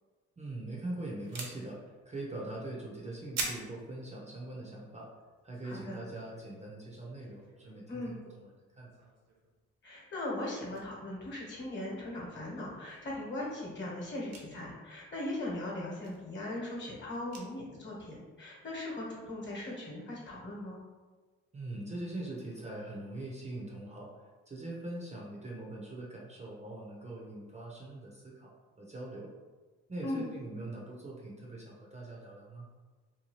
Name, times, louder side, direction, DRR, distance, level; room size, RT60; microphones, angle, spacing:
voice 1, 0.4-5.1 5.4-8.9 21.5-29.3 29.9-32.7, right 2 dB, 25° right, -3 dB, 0.6 m, -42 dB
sound 1, 1.2-8.3 8.7-9.6 9.9-10.2 10.4-10.9 11.2-11.3 11.7-11.9 12.2-17.9 18.3-18.4 18.8-18.9 19.2-20.0, right 3 dB, 60° right, 0.7 m, -46 dB
voice 2, 5.6-6.0 7.9-8.1 9.8-20.8 30.0-30.3, left 1 dB, 40° left, -4 dB, 1.1 m, -39 dB
2.7 x 2.3 x 3.0 m, 1.3 s
cardioid pair, 90°, 30 cm